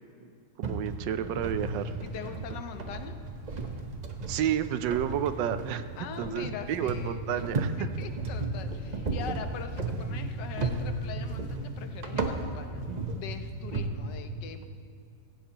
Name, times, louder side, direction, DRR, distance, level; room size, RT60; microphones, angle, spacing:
sound 1, 0.6-13.9, right 3 dB, 45° right, 0.5 m, -34 dB
voice 1, 0.6-1.9 4.3-5.9 6.2-7.9, right 10 dB, 85° right, 11 dB, 1.3 m, -31 dB
voice 2, 2.0-3.2 6.0-7.4 7.8-12.9 13.1-14.6, left 7 dB, 75° left, 7 dB, 1.4 m, -42 dB
16.0 x 16.0 x 2.9 m, 2.4 s
omnidirectional pair, 1.9 m